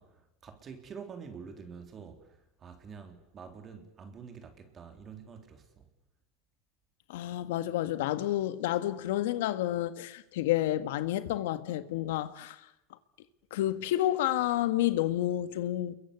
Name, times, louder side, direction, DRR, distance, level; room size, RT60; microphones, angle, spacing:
voice 1, 0.0-5.9, right 6 dB, 30° right, 3.5 m, -47 dB
voice 2, 7.1-12.6 13.5-15.9, left 13 dB, 80° left, 1.7 m, -30 dB
28.5 x 22.5 x 8.2 m
supercardioid pair, 135°, 0 cm